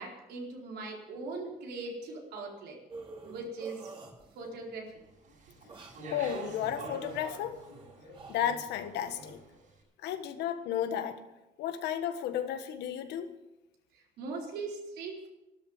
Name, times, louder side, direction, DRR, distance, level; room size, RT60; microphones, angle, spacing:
voice 1, 0.0-2.8 3.2-3.9 4.4-5.0 13.9-15.3, right 3 dB, 75° right, 0 dB, 4.3 m, -40 dB
sound 1, 2.9-4.6 5.5-9.2, right 3 dB, 30° right, 2.6 m, -49 dB
Speech, 5.2-9.6, right 1 dB, 50° right, 7.4 m, -45 dB
voice 2, 6.1-7.6 8.3-9.4 10.0-11.2 11.6-13.3, left 10 dB, 90° left, 8 dB, 1.6 m, -33 dB
14.0 x 12.5 x 7.3 m, 0.97 s
cardioid pair, 150°, 17 cm